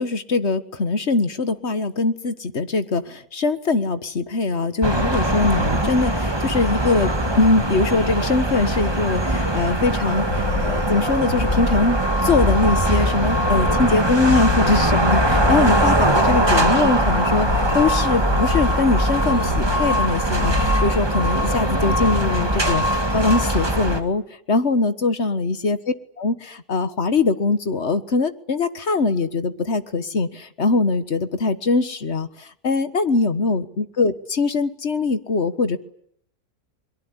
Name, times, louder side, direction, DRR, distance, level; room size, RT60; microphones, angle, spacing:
voice 1, 0.0-17.5 17.7-22.8 23.1-24.2 24.5-25.8 26.2-35.8, left 3 dB, 50° left, 11 dB, 1.7 m, -22 dB
sound 1, 4.8-24.0, right 1 dB, 15° right, 1.9 m, -21 dB
sound 2, 10.3-10.9 11.3-11.9 12.3-12.9 13.3-13.9 14.3-14.9 15.3-15.9 16.3-16.9 17.3-17.9 18.3-18.9 19.3-19.9 20.3-20.9, left 4 dB, 85° left, 4.0 m, -28 dB
23.5 x 22.5 x 9.9 m, 0.66 s
omnidirectional pair, 1.6 m